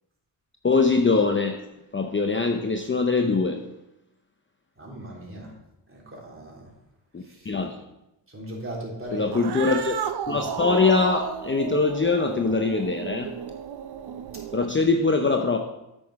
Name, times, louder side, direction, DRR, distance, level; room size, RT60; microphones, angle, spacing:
voice 1, 0.6-1.6 1.9-3.6 7.1-7.7 9.1-9.9 10.3-13.3 14.5-15.6, left 4 dB, 25° left, 4 dB, 0.8 m, -22 dB
voice 2, 4.8-5.5 5.9-6.6 8.3-9.3, right 1 dB, 30° right, -3 dB, 3.5 m, -37 dB
Cat, 9.2-14.9, right 9 dB, 60° right, 0.7 m, -34 dB
8.6 x 6.2 x 4.8 m, 0.90 s
cardioid pair, 60°, 46 cm